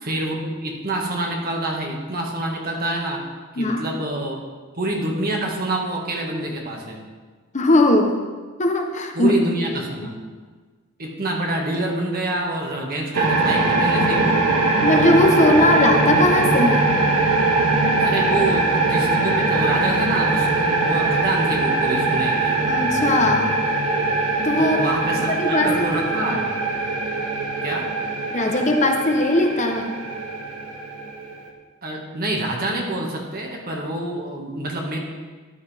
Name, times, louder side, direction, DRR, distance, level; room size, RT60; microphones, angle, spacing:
voice 1, 0.0-3.3 3.5-4.4 4.8-7.0 9.1-10.1 11.0-14.4 18.0-22.6 24.6-26.4 27.6-27.9 31.8-35.0, right 1 dB, 40° right, 0 dB, 1.8 m, -26 dB
voice 2, 7.5-8.2 8.6-9.3 10.0-10.1 14.8-16.9 22.7-23.5 24.3-24.8 25.1-26.4 28.3-29.9, left 1 dB, 35° left, 4 dB, 0.8 m, -19 dB
sound 1, 13.1-31.5, right 3 dB, 80° right, 1.5 m, -21 dB
14.0 x 10.0 x 3.5 m, 1.4 s
head